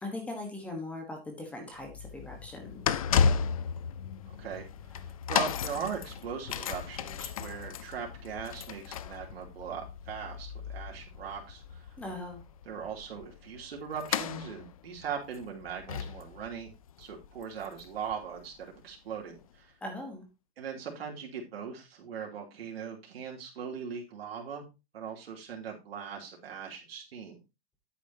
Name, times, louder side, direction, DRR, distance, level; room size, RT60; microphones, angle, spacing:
voice 1, 0.0-2.8 12.0-12.4 19.8-20.2, left 2 dB, 5° left, 3 dB, 1.2 m, -40 dB
sound 1, 1.8-18.7 19.4-19.5, left 7 dB, 35° left, 0.5 m, -34 dB
voice 2, 4.3-4.7 4.9-11.8 12.6-16.7 17.0-19.7 20.6-24.6 24.9-27.4, right 6 dB, 75° right, 0 dB, 3.1 m, -40 dB
9.9 x 8.8 x 2.8 m, 0.25 s
supercardioid pair, 180°, 31 cm